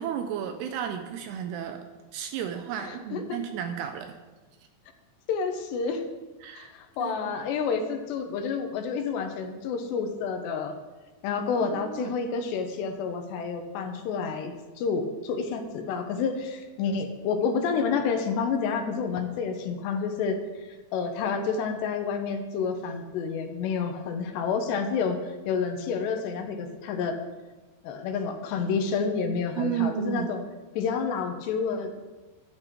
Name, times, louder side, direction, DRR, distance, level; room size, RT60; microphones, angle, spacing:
voice 1, 0.0-1.8 2.1-4.2 6.4-6.7 7.0-7.1 11.7-12.1 29.6-30.3, right 9 dB, 80° right, 7 dB, 2.5 m, -32 dB
voice 2, 2.8-3.2 5.3-6.0 6.6-10.7 11.2-20.4 20.9-27.2 27.8-30.4 30.7-31.9, left 5 dB, 75° left, 5 dB, 3.0 m, -29 dB
11.5 x 10.5 x 4.6 m, 1.2 s
omnidirectional pair, 5.2 m